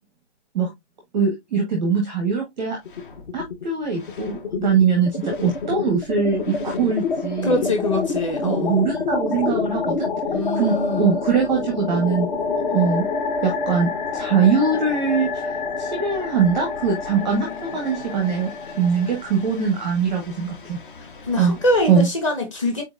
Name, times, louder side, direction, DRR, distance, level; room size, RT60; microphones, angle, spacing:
voice 1, 1.1-2.8 3.3-7.6 8.4-10.1 10.5-12.3 12.7-13.1 13.4-20.8 21.4-21.6 21.9-22.1, right 6 dB, 5° right, 0.6 m, -22 dB
sound 1, 2.8-3.6 3.9-22.0, left 4 dB, 45° left, 0.7 m, -28 dB
voice 2, 7.4-8.8 10.3-11.1 17.2-17.4 21.3-22.8, left 1 dB, 25° left, 1.2 m, -24 dB
5.2 x 4.1 x 2.5 m
hypercardioid pair, 175°, 35 cm